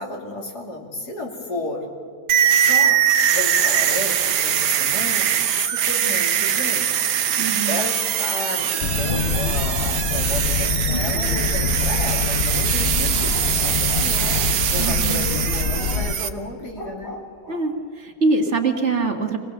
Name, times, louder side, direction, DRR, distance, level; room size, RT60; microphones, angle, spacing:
voice 1, 0.0-1.9 2.5-3.0 3.3-14.2 14.7-17.1, left 2 dB, 75° left, 0 dB, 3.5 m, -32 dB
sound 1, 2.3-16.3, right 9 dB, 80° right, 1.4 m, -22 dB
voice 2, 7.3-7.9 14.8-15.3 17.5-19.4, right 3 dB, 45° right, 4 dB, 1.8 m, -24 dB
sound 2, 8.8-16.1, left 6 dB, 50° left, 0.9 m, -25 dB
sound 3, 13.2-15.3 16.7-17.9, left 1 dB, 15° left, 1.8 m, -39 dB
24.5 x 19.0 x 7.1 m, 2.1 s
omnidirectional pair, 1.7 m